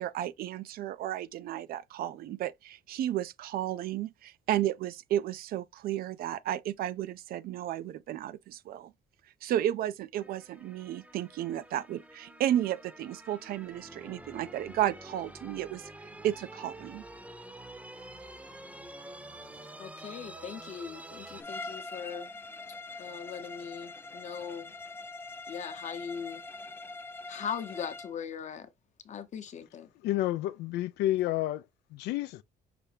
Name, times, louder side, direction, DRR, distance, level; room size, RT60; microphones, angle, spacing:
voice 1, 0.0-8.9 9.4-17.0, right 12 dB, 65° right, 0.4 m, -33 dB
sound 1, 10.2-21.4, right 1 dB, 10° right, 0.7 m, -48 dB
voice 2, 19.4-22.3 23.0-24.7 25.5-26.4 27.3-28.7 29.0-29.9, left 7 dB, 45° left, 0.8 m, -40 dB
Bowed string instrument, 21.4-28.2, left 3 dB, 15° left, 0.3 m, -43 dB
voice 3, 30.0-31.6 31.9-32.4, left 14 dB, 85° left, 0.4 m, -30 dB
5.9 x 2.7 x 3.3 m
cardioid pair, 110°, 17 cm